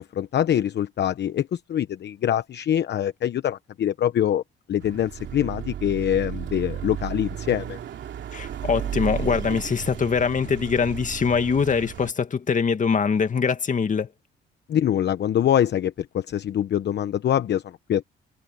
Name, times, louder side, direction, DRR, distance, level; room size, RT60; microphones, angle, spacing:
voice 1, 0.0-4.4 4.7-7.8 14.7-18.0, left 10 dB, 60° left, 0.9 m, -24 dB
Car passing by / Accelerating revving vroom, 4.8-12.1, right 10 dB, 70° right, 2.8 m, -34 dB
voice 2, 8.3-14.1, left 6 dB, 40° left, 2.2 m, -23 dB
cardioid pair, 90°, 20 cm